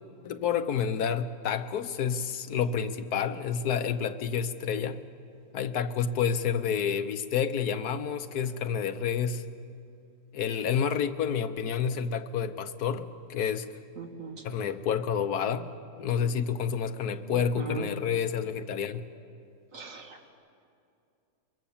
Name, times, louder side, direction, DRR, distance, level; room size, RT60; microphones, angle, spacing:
voice 1, 0.2-5.0 5.5-9.5 10.3-13.7 14.4-15.7 16.0-19.0, left 7 dB, 80° left, 1.4 m, -29 dB
voice 2, 14.0-14.4 17.3-17.9 19.7-20.3, right 4 dB, 55° right, 2.3 m, -39 dB
23.0 x 22.5 x 7.2 m
omnidirectional pair, 1.6 m